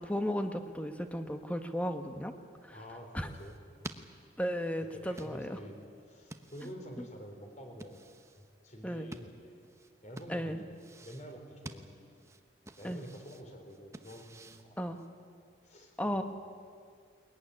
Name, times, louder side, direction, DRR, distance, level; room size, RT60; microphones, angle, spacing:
voice 1, 0.0-2.3 2.6-2.8 3.1-3.3 4.4-5.6 8.8-9.1 10.3-10.6 12.8-13.0 14.8-15.0 16.0-16.2, equal, 10° left, 7 dB, 1.4 m, -35 dB
voice 2, 2.7-3.8 4.8-5.8 6.1-8.0 8.4-9.6 10.0-12.0 12.8-15.1 15.6-16.2, equal, 40° left, 4 dB, 4.2 m, -48 dB
sound 1, 3.2-15.3, right 2 dB, 15° right, 1.0 m, -52 dB
21.5 x 21.5 x 10.0 m, 2.2 s
head